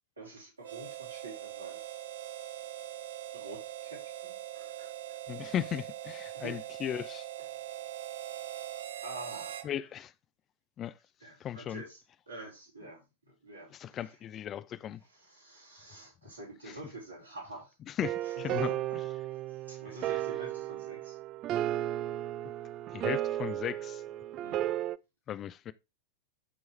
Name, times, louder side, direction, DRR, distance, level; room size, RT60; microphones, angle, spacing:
voice 1, 0.2-1.9 3.3-5.2 6.3-6.5 7.4-7.8 9.0-9.8 11.2-14.2 15.0-17.7 18.2-19.0 19.2-21.2 24.3-24.7, right 2 dB, 80° right, 5.0 m, -48 dB
Harmonica, 0.6-9.7, right 13 dB, 60° right, 0.9 m, -42 dB
voice 2, 5.3-7.3 9.6-10.1 10.8-10.9 11.4-11.8 13.8-15.0 18.0-18.7 22.9-24.0 25.3-25.7, left 10 dB, 30° left, 0.4 m, -36 dB
sound 1, 18.0-25.0, right 13 dB, 35° right, 0.4 m, -34 dB
12.5 x 4.6 x 3.3 m
figure-of-eight pair, 90°, 0 cm